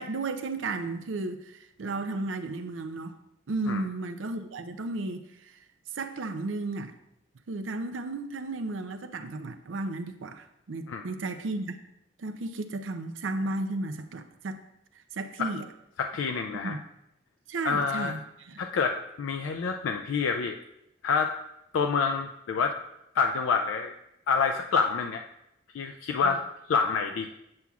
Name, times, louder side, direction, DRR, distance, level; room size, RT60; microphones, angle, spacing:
voice 1, 0.0-3.2 3.5-5.6 5.9-6.9 7.5-11.8 12.2-14.6 15.1-15.7 16.5-16.8 17.5-18.7 26.2-26.4, right 2 dB, 75° right, 9 dB, 0.5 m, -34 dB
voice 2, 16.0-16.7 17.6-18.1 18.6-20.6 21.0-21.4 21.7-22.8 23.2-23.9 24.3-25.2 25.7-26.4 26.7-27.3, left 5 dB, 80° left, 5 dB, 0.4 m, -27 dB
7.6 x 6.9 x 2.3 m, 0.83 s
head